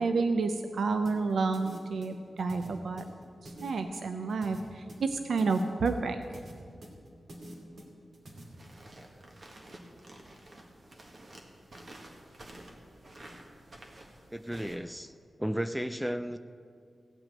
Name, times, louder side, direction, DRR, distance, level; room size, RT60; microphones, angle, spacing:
voice 1, 0.0-3.0 3.4-6.2, right 4 dB, 85° right, 7 dB, 0.6 m, -30 dB
sound 1, 1.1-8.4, equal, 65° right, 2.5 m, -47 dB
sound 2, 8.3-14.8, right 1 dB, 40° right, 1.6 m, -51 dB
voice 2, 14.3-15.1 15.4-16.4, equal, 5° right, 10 dB, 0.3 m, -33 dB
16.5 x 5.9 x 9.1 m, 2.3 s
wide cardioid pair, 145°, 0 cm